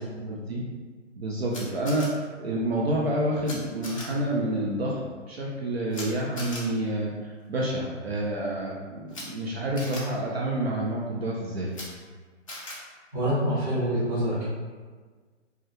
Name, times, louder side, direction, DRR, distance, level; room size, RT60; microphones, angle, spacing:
voice 1, 0.3-0.6 1.2-5.0 5.3-11.7, right 1 dB, 55° right, -4 dB, 0.5 m, -28 dB
Camera, 1.5-2.1 3.4-3.5 3.8-4.0 5.9-6.1 6.4-6.6 9.1-9.2 9.8-10.0 11.7-11.9 12.5-12.8, left 2 dB, 30° left, 0.4 m, -38 dB
voice 2, 13.1-14.4, equal, 10° right, -12 dB, 0.7 m, -26 dB
2.3 x 2.1 x 3.0 m, 1.5 s
figure-of-eight pair, 135°, 38 cm